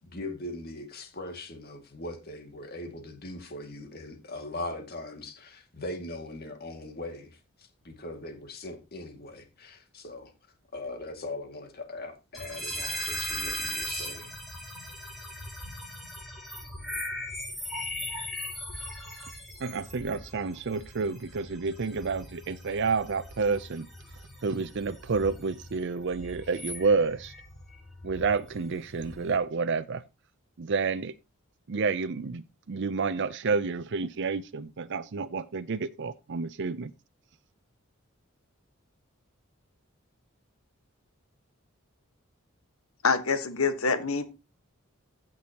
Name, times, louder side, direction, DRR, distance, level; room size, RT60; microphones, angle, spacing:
voice 1, 0.0-10.3 10.7-14.3, left 2 dB, 50° left, 2.1 m, -40 dB
sound 1, 12.3-29.4, equal, ahead, 3.5 m, -39 dB
voice 2, 19.6-23.9 24.4-27.3 28.0-30.0 30.6-31.1 31.7-36.9, right 4 dB, 60° right, 0.5 m, -29 dB
voice 3, 43.0-44.2, left 4 dB, 90° left, 1.3 m, -26 dB
15.5 x 6.1 x 2.9 m
head